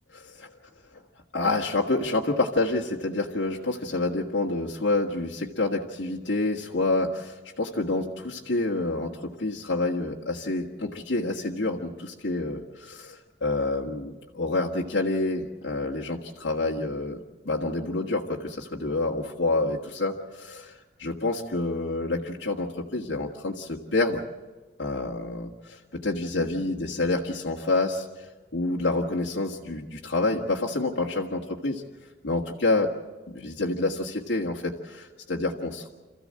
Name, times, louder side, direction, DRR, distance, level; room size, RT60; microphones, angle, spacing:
voice 1, 0.1-0.5 1.3-20.1 20.5-20.6 21.0-24.2 24.8-31.8 32.2-32.9 33.3-35.9, left 2 dB, 80° left, -2 dB, 1.8 m, -28 dB
27.0 x 15.0 x 7.7 m, 1.3 s
head